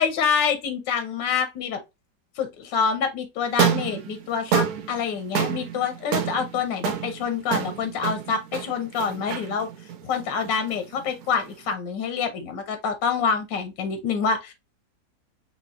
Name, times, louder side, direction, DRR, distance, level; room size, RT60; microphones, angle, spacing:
voice 1, 0.0-1.8 2.4-9.7 10.0-14.5, left 6 dB, 90° left, 1.6 m, -26 dB
sound 1, 3.4-11.7, right 9 dB, 70° right, 1.1 m, -29 dB
4.5 x 3.5 x 2.4 m
omnidirectional pair, 1.9 m